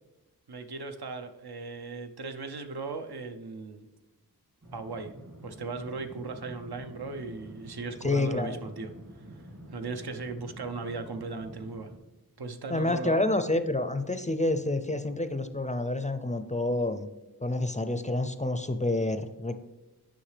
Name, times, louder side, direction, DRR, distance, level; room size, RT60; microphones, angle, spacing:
voice 1, 0.5-3.9 4.7-5.1 5.4-8.9 9.7-11.9 12.4-13.2, right 3 dB, 75° right, 7 dB, 0.7 m, -37 dB
sound 1, 4.6-12.0, right 1 dB, 50° right, 1.8 m, -48 dB
voice 2, 8.0-8.6 12.7-17.1 17.4-19.5, left 2 dB, 20° left, 9 dB, 0.4 m, -28 dB
10.0 x 5.5 x 3.3 m, 1.1 s
wide cardioid pair, 65°, 38 cm